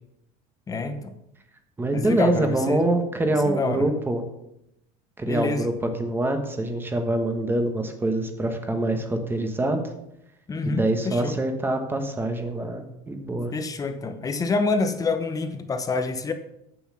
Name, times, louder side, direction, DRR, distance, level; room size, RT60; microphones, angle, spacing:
voice 1, 0.7-1.1 1.9-2.8 3.4-3.9 5.2-5.7 10.5-11.4 13.5-16.3, left 3 dB, 20° left, 8 dB, 0.9 m, -27 dB
voice 2, 1.8-4.2 5.2-9.9 10.6-13.5, right 2 dB, 10° right, 6 dB, 1.2 m, -25 dB
8.0 x 7.1 x 6.2 m, 0.82 s
cardioid pair, 150°, 19 cm